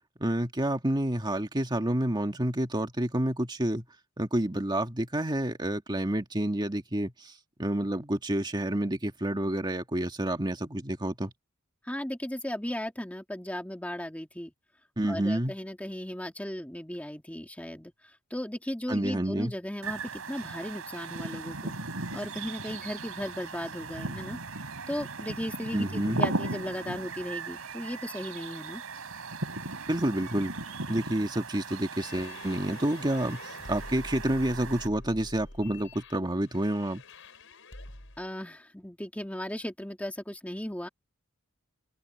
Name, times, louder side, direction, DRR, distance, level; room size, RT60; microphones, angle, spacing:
voice 1, 0.2-3.9 4.2-7.3 7.6-11.3 15.0-15.5 18.9-19.5 25.7-26.2 29.9-30.5 30.9-37.0, right 1 dB, 20° right, 2.0 m, -29 dB
voice 2, 11.8-14.5 15.1-21.8 22.1-24.4 24.9-28.8 38.2-40.9, left 1 dB, 5° left, 1.9 m, -36 dB
sound 1, 19.8-34.9, right 3 dB, 90° right, 4.0 m, -37 dB
sound 2, 31.9-38.3, left 2 dB, 65° left, 7.3 m, -46 dB
head